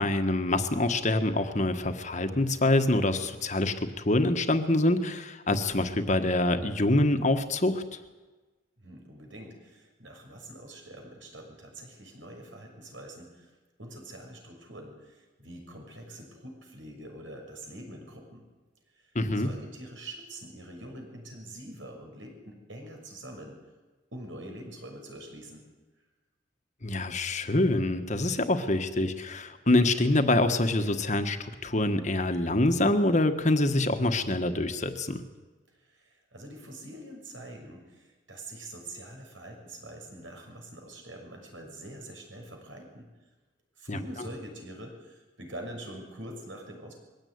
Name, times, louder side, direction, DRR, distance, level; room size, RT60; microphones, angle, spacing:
voice 1, 0.0-7.8 19.1-19.5 26.8-35.2 43.9-44.0, left 2 dB, 40° left, 8 dB, 1.5 m, -25 dB
voice 2, 8.8-13.5 13.8-18.4 18.9-23.6 24.1-25.6 35.7-43.1 43.8-46.9, right 1 dB, 80° right, 3 dB, 6.5 m, -44 dB
21.5 x 16.0 x 9.5 m, 1.2 s
head